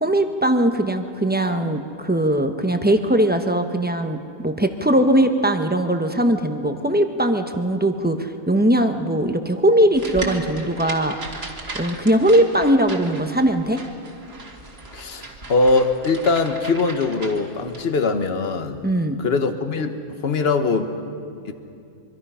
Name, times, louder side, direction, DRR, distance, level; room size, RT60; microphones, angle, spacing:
voice 1, 0.0-4.2 4.4-11.2 11.7-13.8 18.8-19.2, right 1 dB, 10° right, 6 dB, 0.8 m, -20 dB
sound 1, 9.9-17.8, right 3 dB, 45° right, 2.3 m, -36 dB
voice 2, 14.9-15.2 15.5-18.9 19.2-20.0 20.2-20.9 21.5-21.6, left 3 dB, 45° left, 8 dB, 1.4 m, -21 dB
24.5 x 24.5 x 5.7 m, 2.5 s
omnidirectional pair, 1.5 m